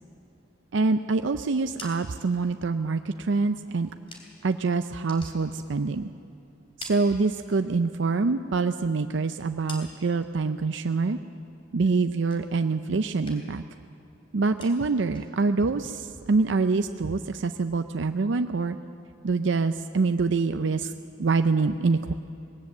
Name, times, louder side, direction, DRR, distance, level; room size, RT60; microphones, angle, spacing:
voice 1, 0.7-3.9 4.4-6.1 6.8-11.2 11.7-13.6 14.3-18.8 19.2-20.9 21.2-22.1, right 4 dB, 70° right, 8 dB, 0.5 m, -25 dB
sound 1, 1.7-4.6 4.9-6.2 6.5-7.8 8.2-10.3 10.7-11.2 11.5-12.8 13.1-13.7 13.9-16.8, left 2 dB, 30° left, 3.3 m, -48 dB
19.5 x 18.0 x 7.3 m, 2.7 s
head